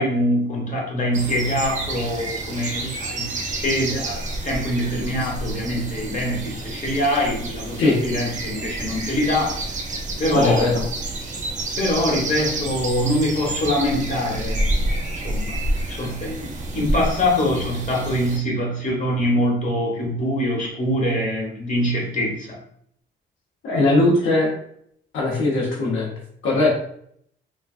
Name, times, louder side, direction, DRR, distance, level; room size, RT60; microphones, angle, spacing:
voice 1, 0.0-9.6 10.2-10.7 11.8-15.6 15.9-22.6, left 1 dB, 40° left, -2 dB, 1.2 m, -24 dB
sound 1, 1.1-18.4, right 2 dB, 40° right, 0.6 m, -29 dB
voice 2, 10.3-10.8 23.6-24.5 25.1-26.1 26.4-26.8, left 2 dB, 75° left, -3 dB, 0.8 m, -19 dB
3.4 x 2.2 x 2.4 m, 0.67 s
cardioid pair, 90°, 20 cm